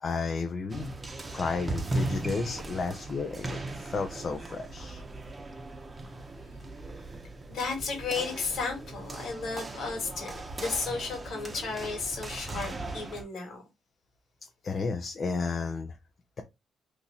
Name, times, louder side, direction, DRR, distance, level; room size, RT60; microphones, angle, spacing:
voice 1, 0.0-0.9 1.3-5.0 14.6-16.0, left 4 dB, 45° left, 0.6 m, -32 dB
sound 1, 0.7-13.2, right 2 dB, 25° right, 0.8 m, -38 dB
voice 2, 7.5-13.6, left 4 dB, 70° left, 1.8 m, -34 dB
3.0 x 2.6 x 3.9 m
cardioid pair, 90°, 0 cm